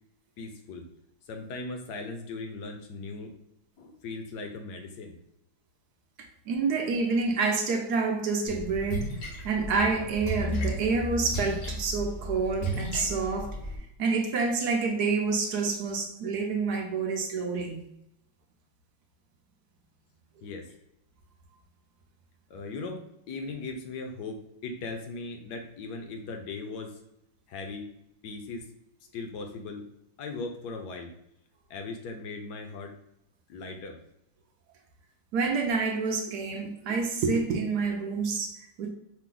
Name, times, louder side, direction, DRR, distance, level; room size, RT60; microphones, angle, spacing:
voice 1, 0.4-0.9 1.3-3.3 3.8-5.1 20.4-20.7 22.5-27.0 27.5-27.8 28.2-28.7 29.1-29.8 30.2-31.1 31.7-32.9 33.5-34.0, left 3 dB, 65° left, 1.2 m, -38 dB
voice 2, 6.5-13.6 14.0-17.9 35.3-38.9, right 4 dB, 70° right, 1.0 m, -28 dB
Splash splatter, 8.5-13.8, equal, 90° left, 2.1 m, -34 dB
5.8 x 2.2 x 3.8 m
omnidirectional pair, 2.1 m